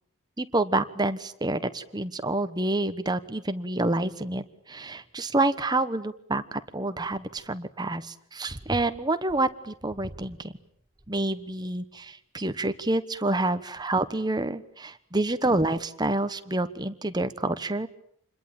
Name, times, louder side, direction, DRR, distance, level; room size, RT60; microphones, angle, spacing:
voice 1, 0.4-4.4 4.7-8.0 8.3-10.5 11.1-17.9, right 2 dB, 20° right, 11 dB, 1.2 m, -28 dB
27.5 x 21.5 x 9.2 m, 0.67 s
head